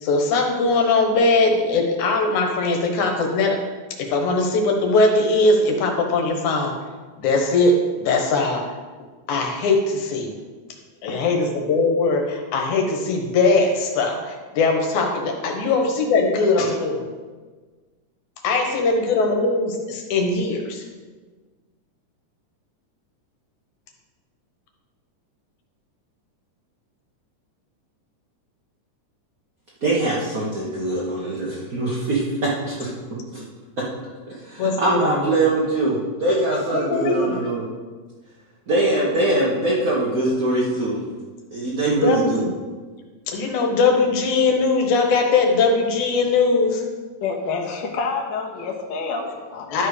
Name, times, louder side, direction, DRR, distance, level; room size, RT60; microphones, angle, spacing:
voice 1, 0.0-3.6 4.0-6.7 7.2-8.6 9.3-10.3 11.0-17.0 18.4-20.8 34.6-35.4 36.7-37.4 41.9-42.5 43.3-46.8 49.7-49.9, left 3 dB, 75° left, 3 dB, 2.4 m, -20 dB
voice 2, 29.8-32.9 33.3-33.4 34.3-37.7 38.7-41.0 41.5-42.5, right 2 dB, 45° right, -7 dB, 1.1 m, -22 dB
voice 3, 47.2-49.9, left 4 dB, 55° left, 0 dB, 1.3 m, -28 dB
12.0 x 4.9 x 5.0 m, 1.4 s
omnidirectional pair, 3.5 m